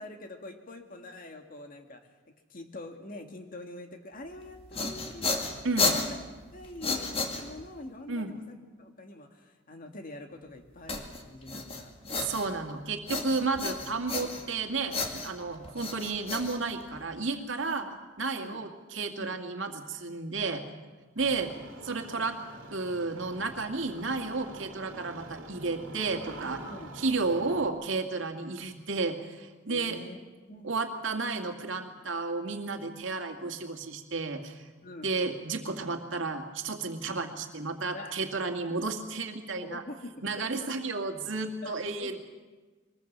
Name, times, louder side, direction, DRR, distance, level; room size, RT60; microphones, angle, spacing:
voice 1, 0.0-2.0 2.5-5.5 5.8-6.2 6.5-11.9 13.3-13.4 14.2-14.3 17.6-18.0 18.4-18.6 19.2-19.4 20.4-20.7 21.2-21.4 26.6-26.9 29.7-30.2 30.5-30.7 34.8-35.1 37.9-38.2 38.5-38.6 39.5-40.7 41.6-41.7 42.0-42.2, left 2 dB, 45° left, 5 dB, 2.1 m, -45 dB
sound 1, 4.4-7.8 10.9-12.7 13.1-14.6 14.9-17.2, left 3 dB, 30° left, 2.2 m, -33 dB
voice 2, 12.2-17.9 18.2-20.6 21.2-21.5 21.8-22.4 22.7-26.6 27.0-30.0 30.6-34.7 35.0-39.8 40.2-42.2, right 3 dB, 70° right, 4 dB, 2.2 m, -32 dB
Engine starting, 21.2-27.7, right 2 dB, 85° right, 2.4 m, -46 dB
23.0 x 20.0 x 7.4 m, 1.3 s
head